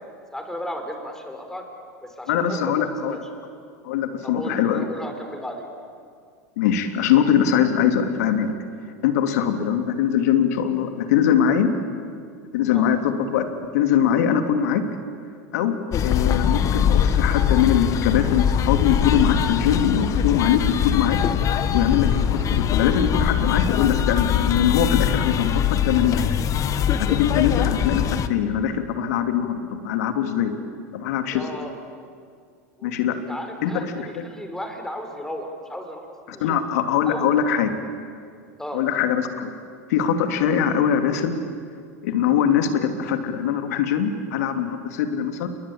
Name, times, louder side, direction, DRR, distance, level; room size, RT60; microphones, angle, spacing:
voice 1, 0.3-1.6 2.0-3.2 4.2-5.7 12.7-12.9 31.3-31.7 32.8-36.6 37.1-37.3 38.6-38.8, equal, 5° left, 4 dB, 5.2 m, -34 dB
voice 2, 2.3-3.2 3.8-4.9 6.6-8.5 9.0-11.7 12.5-13.5 13.7-14.8 15.5-21.2 21.7-26.2 27.0-28.0 28.3-30.5 30.9-31.4 32.8-33.2 33.6-33.9 36.4-37.7 38.7-39.5 39.9-41.4 42.0-45.5, left 8 dB, 70° left, 7 dB, 2.8 m, -22 dB
sound 1, 15.9-28.3, left 9 dB, 40° left, 1.5 m, -22 dB
29.0 x 22.5 x 8.8 m, 2.2 s
hypercardioid pair, 100°, 9 cm